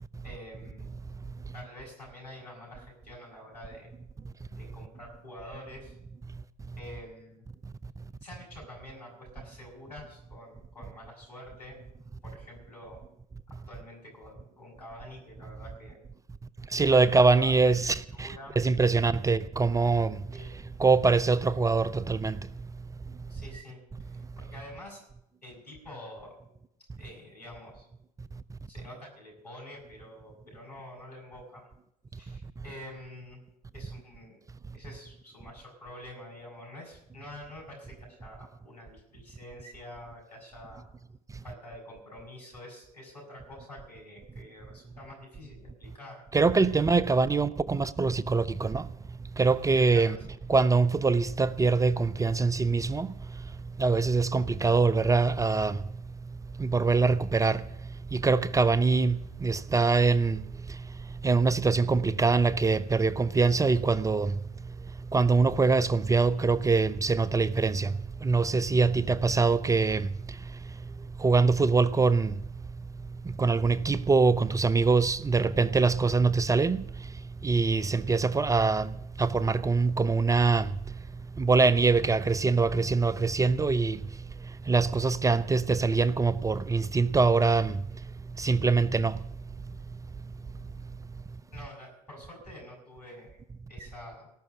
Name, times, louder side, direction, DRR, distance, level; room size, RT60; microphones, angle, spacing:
voice 1, 0.2-0.9 1.5-3.9 4.5-6.0 6.8-7.4 8.2-11.8 12.2-13.0 13.5-16.0 16.7-17.1 17.3-17.5 18.1-18.6 20.3-20.5 23.3-25.0 25.4-26.3 27.0-27.9 28.7-31.7 32.1-33.4 33.7-34.4 34.7-40.8 41.4-46.2 46.7-46.8 49.9-50.4 91.5-93.4 93.7-94.3, left 1 dB, 85° left, 6.2 m, -47 dB
voice 2, 16.7-20.2 20.8-22.4 46.3-48.9 49.4-50.2 50.5-53.1 53.8-55.8 56.6-57.6 58.1-60.4 60.7-60.8 61.2-64.3 65.1-70.1 71.2-72.3 73.2-76.9 77.4-80.7 81.4-84.0 84.7-87.8 88.4-89.2, right 4 dB, 15° right, 0.5 m, -24 dB
18.5 x 6.2 x 9.7 m
figure-of-eight pair, 65°, 20 cm